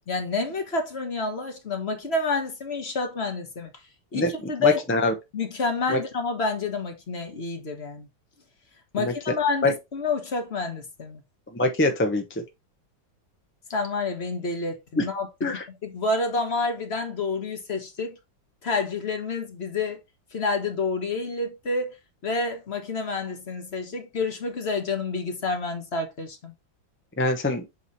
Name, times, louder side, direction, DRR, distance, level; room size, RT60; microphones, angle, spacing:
voice 1, 0.1-3.7 4.1-4.8 5.3-8.1 8.9-11.2 13.7-18.2 18.6-20.0 20.3-21.9 22.2-26.5, left 3 dB, 40° left, 1.4 m, -28 dB
voice 2, 4.6-5.1 5.9-6.0 9.0-9.1 9.6-9.7 11.5-12.2 15.0-15.1 15.4-15.6 27.2-27.6, left 2 dB, 15° left, 0.4 m, -23 dB
7.6 x 3.1 x 4.1 m
omnidirectional pair, 2.0 m